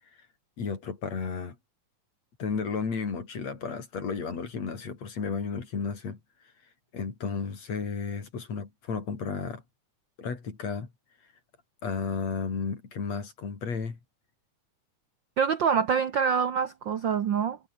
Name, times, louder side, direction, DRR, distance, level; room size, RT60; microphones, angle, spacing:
voice 1, 0.6-1.6 2.4-6.2 6.9-9.6 10.2-10.9 11.8-14.0, left 5 dB, 60° left, 5.0 m, -33 dB
voice 2, 15.4-17.6, right 7 dB, 60° right, 1.3 m, -25 dB
omnidirectional pair, 3.5 m